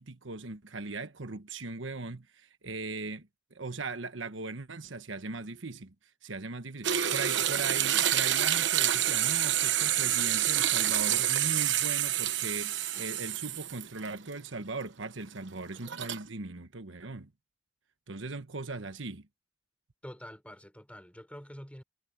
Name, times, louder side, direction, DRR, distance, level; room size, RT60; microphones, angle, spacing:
voice 1, 0.0-5.9 6.2-17.3 18.1-19.3, right 3 dB, 85° right, 1.3 m, -39 dB
sound 1, 6.8-14.1 14.5-14.6 15.8-16.2, right 11 dB, 65° right, 1.0 m, -28 dB
voice 2, 20.0-21.8, equal, 5° left, 4.4 m, -46 dB
head